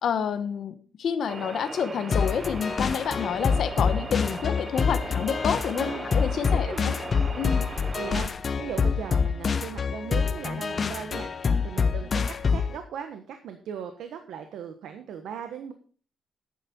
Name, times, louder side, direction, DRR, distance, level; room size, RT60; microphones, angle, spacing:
voice 1, 0.0-6.9 7.4-7.6, left 7 dB, 55° left, 10 dB, 1.0 m, -29 dB
sound 1, 1.3-8.3, right 3 dB, 20° right, 0.8 m, -39 dB
sound 2, 2.1-12.8, left 5 dB, 30° left, 0.7 m, -26 dB
voice 2, 5.7-6.1 6.5-7.0 7.7-15.7, right 8 dB, 80° right, 7 dB, 1.3 m, -38 dB
11.0 x 9.2 x 4.4 m, 0.41 s
wide cardioid pair, 175°, 0 cm